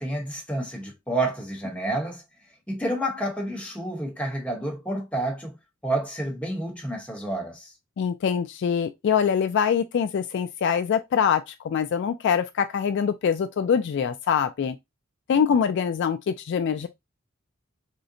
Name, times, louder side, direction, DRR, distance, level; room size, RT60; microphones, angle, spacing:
voice 1, 0.0-2.2 2.7-5.6 5.8-7.7, right 1 dB, 5° left, 0.9 m, -29 dB
voice 2, 8.0-14.8 15.3-16.9, left 7 dB, 60° left, 0.3 m, -24 dB
3.8 x 2.1 x 2.5 m
head